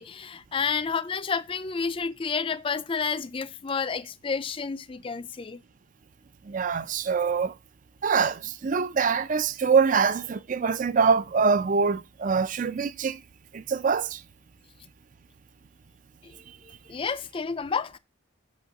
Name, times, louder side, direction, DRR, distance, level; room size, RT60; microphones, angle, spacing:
voice 1, 0.0-5.6 16.6-18.0, left 5 dB, 25° left, 0.4 m, -30 dB
voice 2, 6.4-7.5 8.0-13.2 13.5-14.2, right 5 dB, 40° right, 0.4 m, -24 dB
6.2 x 4.3 x 5.8 m
head